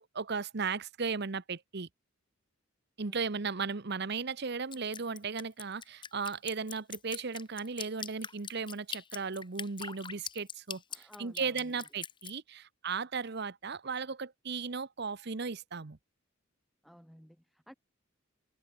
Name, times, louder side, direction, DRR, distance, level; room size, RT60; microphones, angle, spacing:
voice 1, 0.0-1.9 3.0-16.0, right 5 dB, 55° right, 0.9 m, -36 dB
Drip, 4.7-12.3, left 7 dB, 25° left, 1.8 m, -42 dB
voice 2, 10.9-11.8 16.8-17.7, equal, ahead, 4.0 m, -55 dB
head